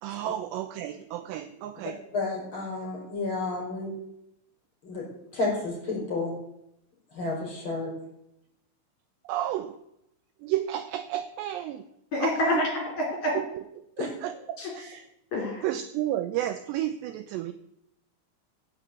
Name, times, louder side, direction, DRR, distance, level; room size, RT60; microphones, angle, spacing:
voice 1, 0.0-2.0 9.3-9.8 10.4-11.8 12.2-12.6 13.3-13.6 14.0-15.1 15.6-17.5, right 12 dB, 85° right, 11 dB, 2.4 m, -32 dB
voice 2, 2.1-3.9 4.8-5.1 5.3-6.3 7.1-7.9 14.0-14.1, left 3 dB, 25° left, -3 dB, 5.9 m, -31 dB
voice 3, 12.1-13.3 14.6-14.7 15.3-15.6, left 1 dB, 40° left, -1 dB, 3.8 m, -27 dB
16.0 x 7.2 x 8.2 m, 0.80 s
omnidirectional pair, 5.7 m